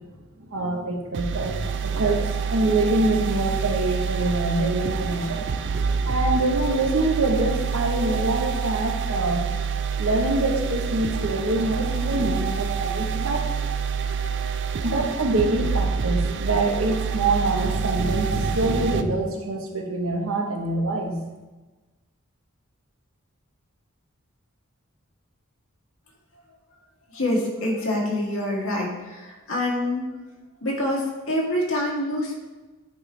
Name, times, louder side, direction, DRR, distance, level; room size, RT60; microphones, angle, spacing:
voice 1, 0.5-5.5 6.1-9.4 10.0-13.5 14.8-21.2, right 2 dB, 75° right, 2 dB, 1.1 m, -25 dB
sound 1, 1.1-19.0, right 6 dB, 55° right, 0.4 m, -27 dB
voice 2, 27.1-30.1 30.6-32.4, left 1 dB, 80° left, -3 dB, 2.1 m, -26 dB
9.6 x 4.5 x 3.3 m, 1.2 s
head